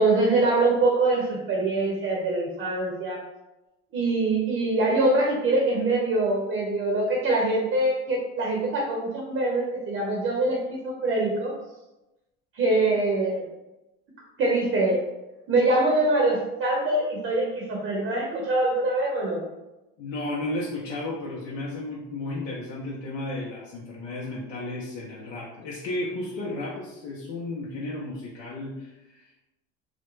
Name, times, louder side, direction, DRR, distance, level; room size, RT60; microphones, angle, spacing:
voice 1, 0.0-3.2 3.9-11.5 12.5-13.5 14.4-15.1 15.5-19.4, right 2 dB, 45° right, -1 dB, 0.7 m, -24 dB
voice 2, 20.0-29.4, left 2 dB, 75° left, -6 dB, 0.6 m, -33 dB
2.4 x 2.1 x 3.0 m, 0.99 s
supercardioid pair, 100°, 29 cm